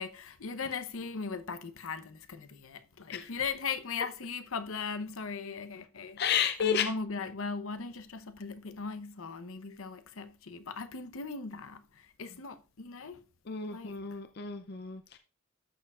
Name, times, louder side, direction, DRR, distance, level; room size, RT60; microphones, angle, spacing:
voice 1, 0.0-6.2 6.6-13.2 13.7-14.0, left 5 dB, 80° left, 0.8 m, -38 dB
voice 2, 6.2-6.9 13.5-15.2, left 8 dB, 50° left, 0.5 m, -31 dB
12.5 x 6.7 x 2.4 m
head